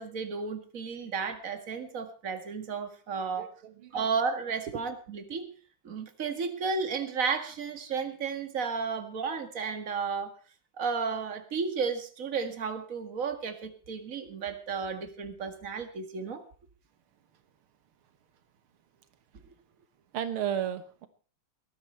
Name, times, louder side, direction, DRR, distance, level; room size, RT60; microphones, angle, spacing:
voice 1, 0.0-3.5 3.9-5.5 5.8-10.3 10.8-16.4, right 5 dB, 40° right, 7 dB, 2.2 m, -33 dB
voice 2, 3.4-4.1 4.7-4.8 20.1-21.1, right 9 dB, 90° right, 10 dB, 2.2 m, -34 dB
19.5 x 13.0 x 4.5 m, 0.39 s
omnidirectional pair, 2.3 m